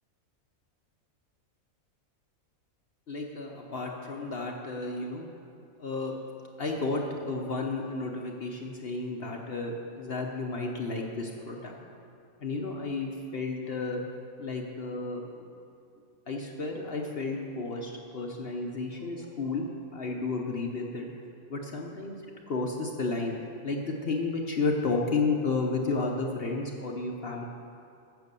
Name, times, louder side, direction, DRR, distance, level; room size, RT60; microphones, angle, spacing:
voice 1, 3.1-5.3 5.8-6.2 6.6-11.8 12.4-14.0 14.4-15.5 16.3-21.1 21.5-23.4 23.6-27.4, left 3 dB, 50° left, 0 dB, 1.0 m, -32 dB
11.0 x 7.5 x 6.8 m, 2.5 s
omnidirectional pair, 1.4 m